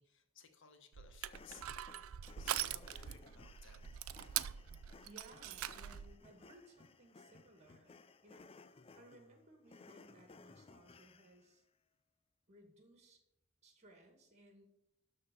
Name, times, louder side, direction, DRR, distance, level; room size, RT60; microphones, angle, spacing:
voice 1, 0.0-1.7 2.4-3.9, left 6 dB, 60° left, 7 dB, 1.4 m, -60 dB
Crushing, 0.9-6.1, right 11 dB, 75° right, 0.4 m, -43 dB
sound 1, 1.2-11.5, left 4 dB, 25° left, 0.4 m, -60 dB
voice 2, 5.0-8.5 9.0-11.6 12.5-13.2 13.6-14.7, right 1 dB, 35° right, 3 dB, 2.2 m, -61 dB
12.5 x 4.3 x 6.8 m, 0.88 s
head